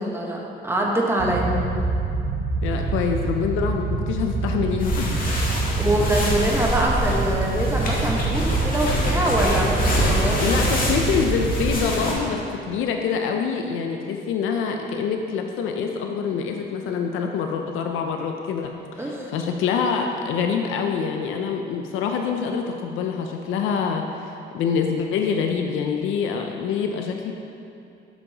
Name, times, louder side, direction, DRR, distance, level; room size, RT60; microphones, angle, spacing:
voice 1, 0.0-1.5 5.8-10.8 19.0-19.3, right 1 dB, 10° right, -2 dB, 1.2 m, -24 dB
sound 1, 1.2-11.8, right 3 dB, 80° right, 0.8 m, -26 dB
voice 2, 1.5-1.9 2.6-5.3 10.4-27.3, left 6 dB, 85° left, 3 dB, 0.5 m, -26 dB
sound 2, 4.8-12.1, left 1 dB, 45° left, 1.6 m, -26 dB
8.3 x 6.8 x 2.9 m, 2.7 s
cardioid pair, 90°, 20 cm